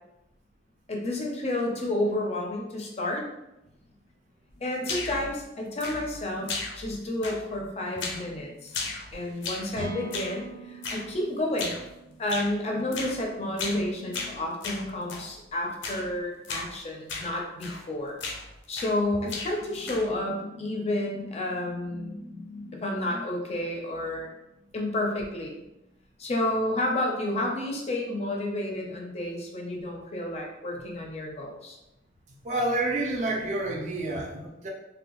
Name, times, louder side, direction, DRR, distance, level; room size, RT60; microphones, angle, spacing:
voice 1, 0.9-3.3 4.6-11.9 12.2-18.2 18.7-24.4 24.7-25.6 26.2-31.8, left 1 dB, 35° left, 0 dB, 0.4 m, -31 dB
sound 1, 4.8-5.3 5.8-6.2 6.5-7.0 7.2-7.6 8.0-8.3 8.7-9.7 10.1-10.4 10.8-11.1 11.6-11.9 12.3-12.5 12.9-13.2 13.6-13.8 14.1-15.3 15.8-16.1 16.4-16.7 17.1-17.3 17.6-17.9 18.2-19.0 19.3-20.2, left 3 dB, 90° left, 0.5 m, -35 dB
sound 2, 9.7-13.5, right 3 dB, 85° right, 0.7 m, -42 dB
voice 2, 32.4-34.7, right 2 dB, 40° right, 0 dB, 0.4 m, -29 dB
2.6 x 2.2 x 2.9 m, 0.91 s
head